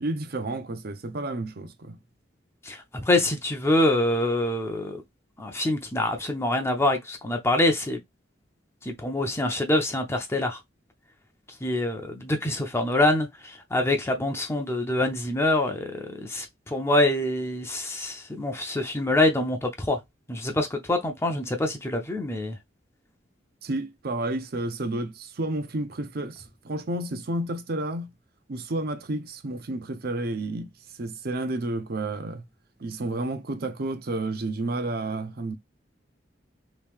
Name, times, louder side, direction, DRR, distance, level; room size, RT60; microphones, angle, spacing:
voice 1, 0.0-2.0 23.6-28.1 28.5-32.4 32.8-35.6, right 2 dB, 55° right, 0.6 m, -31 dB
voice 2, 2.6-5.0 5.4-8.0 8.8-10.6 11.6-20.0 20.3-22.6, left 1 dB, 15° left, 0.6 m, -25 dB
3.0 x 2.7 x 3.4 m
head